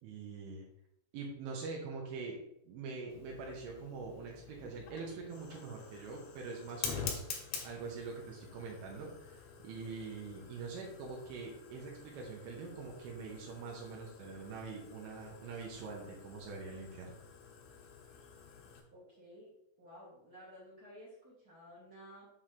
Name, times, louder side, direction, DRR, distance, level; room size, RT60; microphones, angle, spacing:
voice 1, 0.0-0.7 1.1-2.4 2.6-7.2 7.6-9.4 9.6-17.1, right 4 dB, 80° right, -2 dB, 3.4 m, -44 dB
Fire, 3.1-18.8, left 6 dB, 70° left, 2.3 m, -48 dB
voice 2, 18.9-19.5 19.8-22.3, equal, 60° right, -6 dB, 0.9 m, -54 dB
7.7 x 3.4 x 5.9 m, 0.78 s
omnidirectional pair, 5.6 m